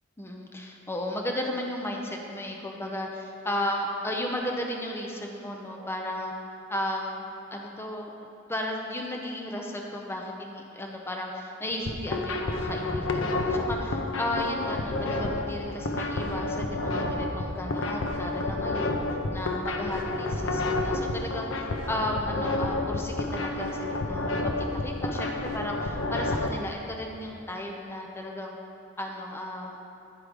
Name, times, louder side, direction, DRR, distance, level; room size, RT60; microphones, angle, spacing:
voice 1, 0.2-6.3 6.7-7.3 7.5-8.1 8.5-18.9 19.3-28.6 29.0-29.8, left 1 dB, 10° left, 0 dB, 0.5 m, -34 dB
sound 1, 11.7-26.5, left 2 dB, 70° left, 0.6 m, -30 dB
9.9 x 4.7 x 5.0 m, 2.7 s
head